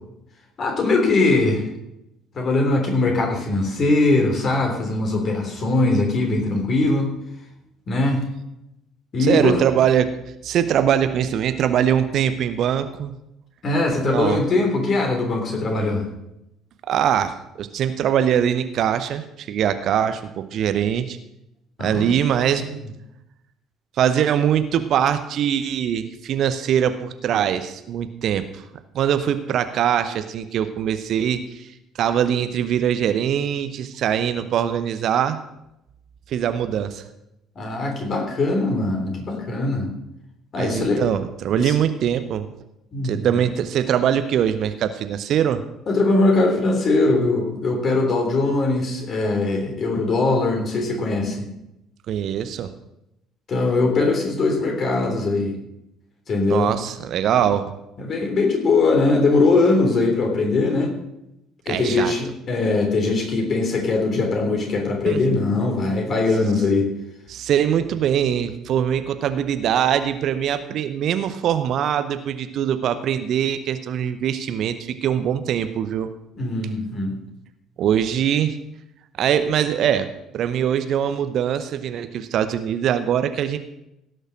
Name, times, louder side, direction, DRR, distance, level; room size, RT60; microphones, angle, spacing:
voice 1, 0.6-1.6 2.3-7.1 7.9-8.2 9.1-9.6 13.6-16.0 21.8-22.0 37.5-39.9 40.5-41.0 41.6-41.7 42.9-43.3 45.9-51.5 53.5-55.5 56.3-56.7 58.0-60.9 61.6-66.9 76.4-77.2, left 3 dB, 40° left, 2 dB, 3.3 m, -21 dB
voice 2, 9.2-10.1 10.4-13.1 13.9-14.4 16.9-21.2 21.8-22.7 24.0-28.6 28.9-31.7 32.0-35.4 36.3-37.0 40.6-42.5 43.0-45.6 52.1-52.7 56.5-57.6 61.7-62.1 65.1-65.2 67.3-76.1 77.8-78.6 79.2-83.6, right 9 dB, 50° right, 11 dB, 0.8 m, -22 dB
16.5 x 6.6 x 6.3 m, 0.85 s
figure-of-eight pair, 55°, 0 cm